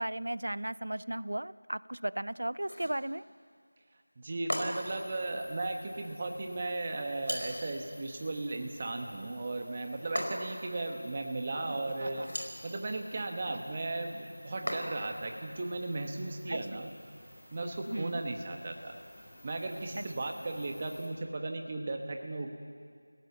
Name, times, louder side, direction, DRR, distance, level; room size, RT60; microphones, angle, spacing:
voice 1, 0.0-3.2 16.5-16.6 17.9-18.2 20.0-20.1, right 1 dB, 65° right, 19 dB, 0.6 m, -35 dB
sound 1, 2.6-3.0 4.5-5.0 7.2-7.7 10.2-10.7 12.1-12.6 14.7-15.2, equal, 80° left, 4.8 m, -37 dB
voice 2, 4.2-12.3 12.6-16.9 17.5-18.9 19.4-22.5, right 2 dB, 20° right, 4 dB, 1.3 m, -36 dB
sound 2, 4.7-21.1, left 1 dB, 5° left, 3.3 m, -55 dB
Laughter, 8.9-9.3 11.6-12.4 13.0-13.8 14.6-14.7, right 1 dB, 45° right, 1.6 m, -49 dB
29.5 x 17.0 x 7.3 m, 2.1 s
figure-of-eight pair, 175°, 0 cm